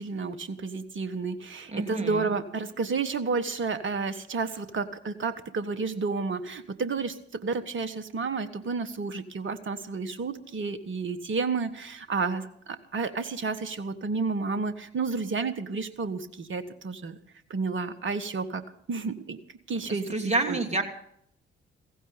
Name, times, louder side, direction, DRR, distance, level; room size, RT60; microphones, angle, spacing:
voice 1, 0.0-17.2 17.5-18.6 18.9-19.4 19.7-20.1 20.5-20.6, right 4 dB, 40° right, 12 dB, 1.5 m, -31 dB
voice 2, 1.7-2.3 19.7-20.8, right 2 dB, 20° right, 6 dB, 2.8 m, -29 dB
15.5 x 15.5 x 5.3 m, 0.68 s
figure-of-eight pair, 45°, 30 cm